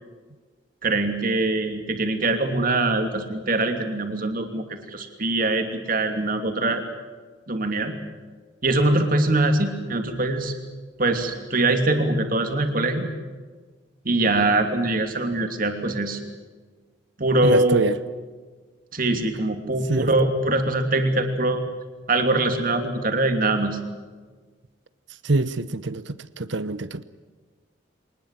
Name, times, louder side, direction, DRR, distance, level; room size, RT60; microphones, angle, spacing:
voice 1, 0.8-6.8 7.5-7.9 8.6-10.5 11.0-13.1 14.0-16.2 17.2-17.9 18.9-21.6 22.1-23.8, right 2 dB, 45° right, 6 dB, 2.9 m, -23 dB
voice 2, 17.4-18.0 19.9-20.1 25.2-27.0, right 2 dB, 65° right, 15 dB, 0.9 m, -25 dB
23.5 x 20.0 x 7.6 m, 1.4 s
head